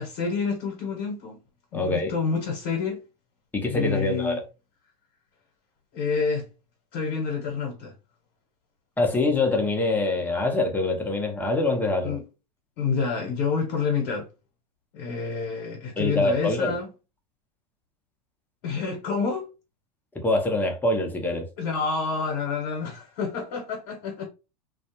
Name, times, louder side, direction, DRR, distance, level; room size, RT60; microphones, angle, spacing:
voice 1, 0.0-1.4 1.7-3.0 3.6-4.4 5.9-6.4 6.9-7.9 12.0-12.2 12.8-14.3 14.9-16.9 18.6-19.5 21.6-24.3, left 5 dB, 55° left, 1.0 m, -28 dB
voice 2, 1.7-2.1 3.5-4.4 9.0-12.2 16.0-16.8 20.1-21.5, left 2 dB, 10° left, 0.7 m, -24 dB
2.3 x 2.2 x 2.9 m
hypercardioid pair, 105°, 21 cm